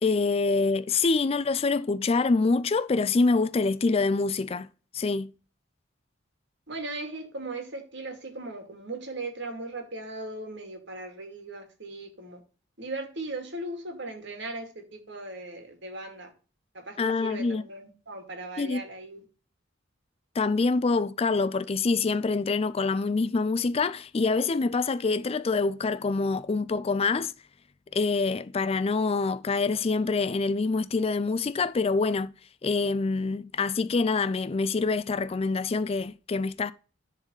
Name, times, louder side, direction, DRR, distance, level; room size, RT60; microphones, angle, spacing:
voice 1, 0.0-4.7 4.9-5.3 17.0-17.6 18.6-18.8 20.4-27.3 27.9-32.3 32.6-36.7, left 4 dB, 30° left, 0.4 m, -26 dB
voice 2, 6.7-12.4 12.8-16.3 16.7-19.2, right 2 dB, 65° right, 2.4 m, -38 dB
10.5 x 4.1 x 5.4 m
head